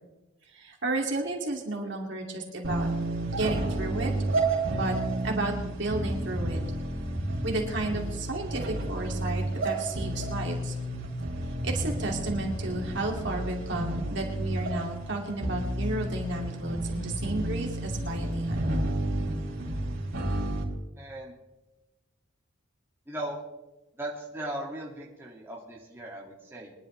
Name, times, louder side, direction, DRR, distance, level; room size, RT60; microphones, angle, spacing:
voice 1, 0.5-2.9 3.3-4.1 4.7-5.0 5.2-6.6 7.4-10.7 11.6-18.7, right 2 dB, 55° right, 1 dB, 2.5 m, -32 dB
sound 1, 2.6-20.6, right 1 dB, 75° right, 3.7 m, -31 dB
voice 2, 21.0-21.4 23.1-23.4 24.0-26.7, right 1 dB, 10° right, -3 dB, 2.2 m, -38 dB
23.5 x 11.0 x 3.3 m, 1.0 s
head